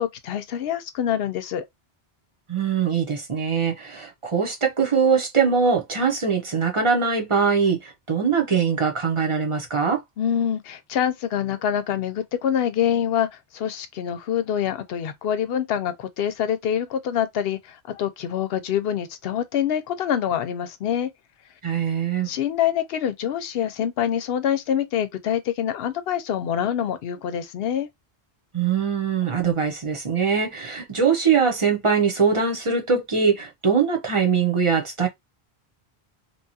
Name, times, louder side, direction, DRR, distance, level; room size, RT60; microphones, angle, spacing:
voice 1, 0.0-1.6 10.2-21.1 22.3-27.9, left 9 dB, 70° left, 0.8 m, -25 dB
voice 2, 2.5-10.0 21.6-22.3 28.5-35.1, right 6 dB, 35° right, 0.8 m, -22 dB
2.9 x 2.3 x 2.7 m
omnidirectional pair, 1.0 m